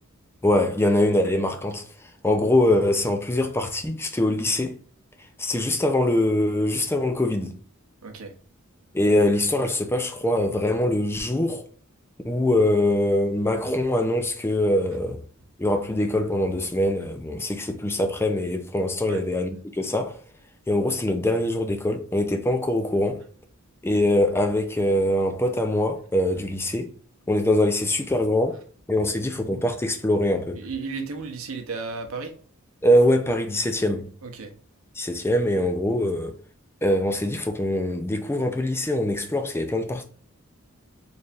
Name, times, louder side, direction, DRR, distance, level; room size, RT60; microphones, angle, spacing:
voice 1, 0.4-1.8 2.2-4.8 5.4-7.6 8.9-11.6 12.2-15.2 15.6-20.2 20.7-23.2 23.8-26.9 27.3-28.6 28.9-30.6 32.8-34.1 35.0-36.3 36.8-40.0, left 1 dB, 10° left, 0.5 m, -23 dB
voice 2, 8.0-8.3 19.1-19.2 30.6-32.3 34.2-34.5, right 4 dB, 70° right, 0.7 m, -33 dB
4.1 x 3.3 x 2.4 m
head